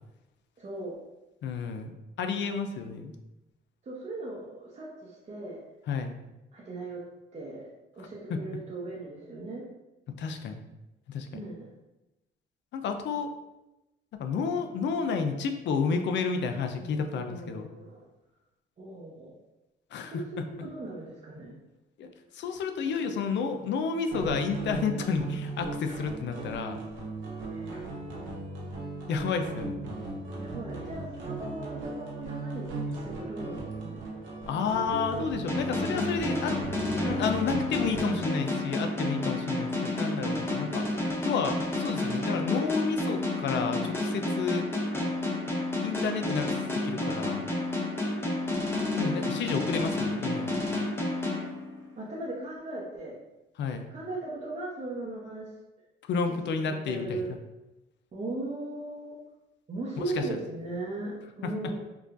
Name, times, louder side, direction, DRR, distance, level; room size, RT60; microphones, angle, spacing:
voice 1, 0.6-1.0 3.8-5.6 6.5-7.0 7.3-7.6 8.0-9.6 11.3-11.7 17.1-18.1 18.8-19.3 20.0-21.5 27.5-27.8 30.4-32.7 33.0-34.0 52.0-53.1 53.9-55.5 56.3-57.3 58.1-59.2 59.7-61.8, right 2 dB, 35° right, -6 dB, 0.8 m, -38 dB
voice 2, 1.4-3.1 5.9-6.1 8.3-8.4 10.2-10.6 11.1-11.3 12.7-13.3 14.2-17.7 19.9-20.2 22.0-26.8 29.1-29.8 34.5-36.6 37.0-40.9 41.2-44.7 45.8-47.4 48.9-50.5 53.6-53.9 56.1-57.2 60.0-60.2, left 5 dB, 65° left, 6 dB, 0.4 m, -31 dB
sound 1, 24.1-38.2, right 2 dB, 70° right, 0.9 m, -37 dB
sound 2, 35.5-52.1, left 2 dB, 10° left, 0.7 m, -30 dB
4.7 x 2.3 x 2.5 m, 0.98 s
cardioid pair, 90°, 20 cm